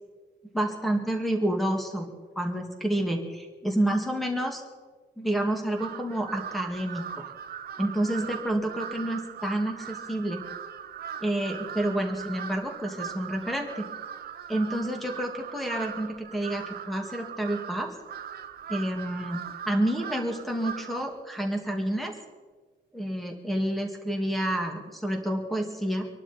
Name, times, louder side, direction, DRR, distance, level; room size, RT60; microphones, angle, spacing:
voice 1, 0.5-2.1 2.4-4.6 5.2-7.2 7.8-10.4 11.2-13.9 14.5-17.9 18.7-19.4 19.7-22.1 22.9-26.0, right 1 dB, ahead, 2 dB, 1.9 m, -29 dB
Crow, 5.7-21.1, right 8 dB, 55° right, 0.8 m, -40 dB
25.5 x 12.0 x 4.3 m, 1.4 s
wide cardioid pair, 170°, 19 cm